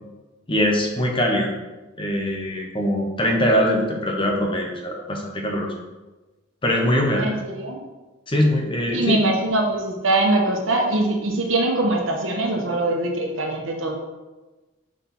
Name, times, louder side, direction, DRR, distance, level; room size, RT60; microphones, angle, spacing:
voice 1, 0.5-1.5 2.0-5.7 6.6-7.3 8.3-9.2, equal, 25° left, 0 dB, 0.9 m, -22 dB
voice 2, 7.1-7.8 8.9-13.9, right 2 dB, 80° right, 1 dB, 1.1 m, -22 dB
6.0 x 4.3 x 4.3 m, 1.2 s
head